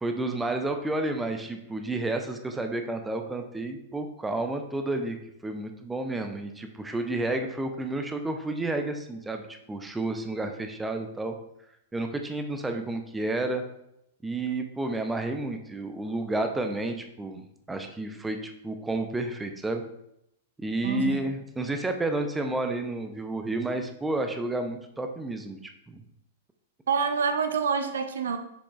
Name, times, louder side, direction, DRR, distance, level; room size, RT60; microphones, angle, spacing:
voice 1, 0.0-5.2 5.4-11.3 11.9-13.6 14.2-17.4 17.7-19.8 20.6-26.0, right 2 dB, 10° right, 5 dB, 0.6 m, -31 dB
voice 2, 20.8-21.2 26.9-28.4, right 6 dB, 65° right, 7 dB, 0.7 m, -27 dB
7.1 x 6.9 x 2.4 m, 0.79 s
figure-of-eight pair, 100°, 0 cm